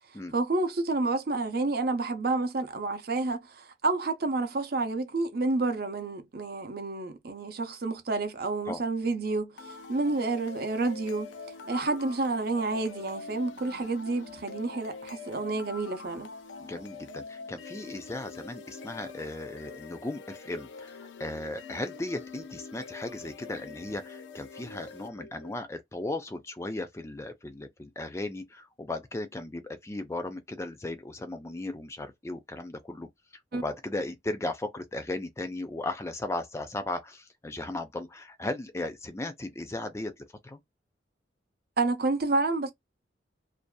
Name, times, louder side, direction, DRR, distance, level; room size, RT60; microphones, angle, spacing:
voice 1, 0.3-11.3 11.7-16.3 33.5-33.6 41.8-42.7, right 3 dB, 55° right, 0.6 m, -29 dB
sound 1, 9.6-25.6, left 4 dB, 80° left, 0.5 m, -45 dB
voice 2, 16.6-33.1 33.5-40.6, left 2 dB, 15° left, 0.3 m, -36 dB
2.6 x 2.2 x 2.2 m
head